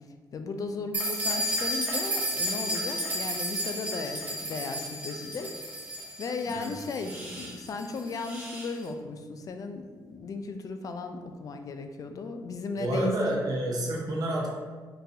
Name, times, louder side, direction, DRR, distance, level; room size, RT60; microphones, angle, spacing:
voice 1, 0.3-5.5 6.2-13.4, left 4 dB, 50° left, 7 dB, 0.3 m, -36 dB
sound 1, 0.9-8.7, equal, 20° right, 1.1 m, -33 dB
voice 2, 12.8-14.5, right 1 dB, 55° right, -2 dB, 0.8 m, -29 dB
3.8 x 2.4 x 2.7 m, 1.5 s
cardioid pair, 80°, 8 cm